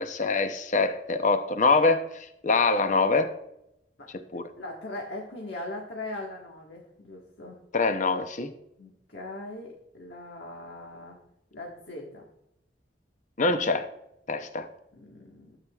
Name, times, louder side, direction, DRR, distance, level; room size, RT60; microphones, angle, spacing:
voice 1, 0.0-3.3 4.3-4.5 7.7-8.5 13.4-13.9 14.3-14.7, left 3 dB, 45° left, 9 dB, 0.7 m, -24 dB
voice 2, 4.3-7.6 8.8-11.2 11.5-12.2 14.9-15.6, left 2 dB, 80° left, -1 dB, 1.5 m, -40 dB
13.0 x 8.4 x 2.4 m, 0.80 s
head